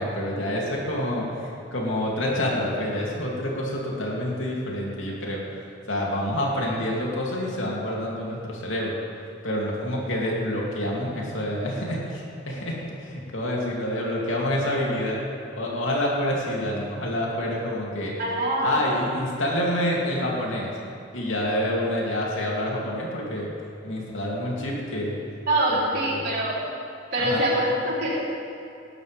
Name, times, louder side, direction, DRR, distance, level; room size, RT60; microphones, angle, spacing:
voice 1, 0.0-5.5 5.9-9.0 9.4-15.2 15.6-18.1 18.6-20.7 21.1-23.5 23.8-25.2 25.7-26.2 27.2-27.5, left 1 dB, 85° left, -3 dB, 3.0 m, -27 dB
voice 2, 18.2-18.8 25.5-26.6 27.1-28.2, right 1 dB, 55° right, -6 dB, 3.8 m, -24 dB
18.5 x 12.0 x 3.6 m, 2.6 s
head